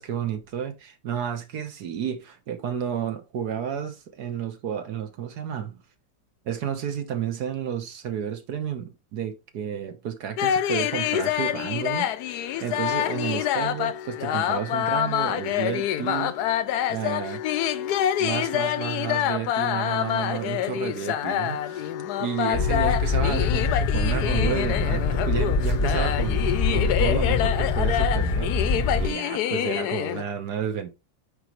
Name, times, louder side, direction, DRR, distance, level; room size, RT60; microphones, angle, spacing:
voice 1, 0.0-5.8 6.4-16.3 16.9-17.4 18.2-21.9 22.2-30.9, right 8 dB, 60° right, 1.4 m, -31 dB
sound 1, 10.4-30.2, left 11 dB, 70° left, 1.0 m, -27 dB
sound 2, 22.5-29.1, left 4 dB, 25° left, 0.9 m, -24 dB
9.5 x 3.5 x 3.0 m
omnidirectional pair, 2.0 m